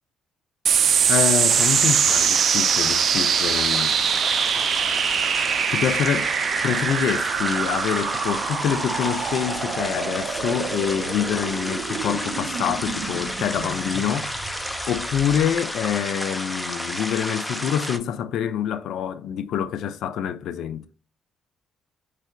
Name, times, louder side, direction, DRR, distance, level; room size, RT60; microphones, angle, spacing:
sound 1, 0.7-15.5, right 7 dB, 60° right, 0.4 m, -24 dB
voice 1, 1.1-3.9 5.7-6.3 6.6-14.3 14.9-20.8, left 9 dB, 80° left, 0.3 m, -26 dB
sound 2, 1.5-18.0, equal, 5° left, 0.5 m, -31 dB
3.6 x 3.2 x 2.2 m
cardioid pair, 90°, 0 cm